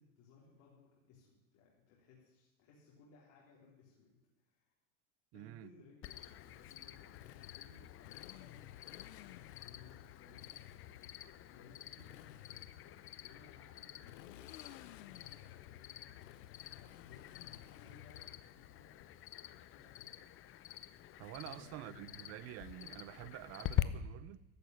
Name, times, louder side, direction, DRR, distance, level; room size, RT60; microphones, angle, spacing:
voice 1, 0.0-4.7 5.3-11.1 11.4-20.2 21.4-22.2, left 5 dB, 55° left, 4.0 m, -62 dB
voice 2, 5.3-5.7 21.2-24.4, right 15 dB, 40° right, 0.6 m, -48 dB
Motorcycle, 6.0-18.9, left 14 dB, 90° left, 0.7 m, -56 dB
Cricket, 6.0-23.8, left 15 dB, 35° left, 0.7 m, -46 dB
14.5 x 6.9 x 9.8 m
supercardioid pair, 125°, 38 cm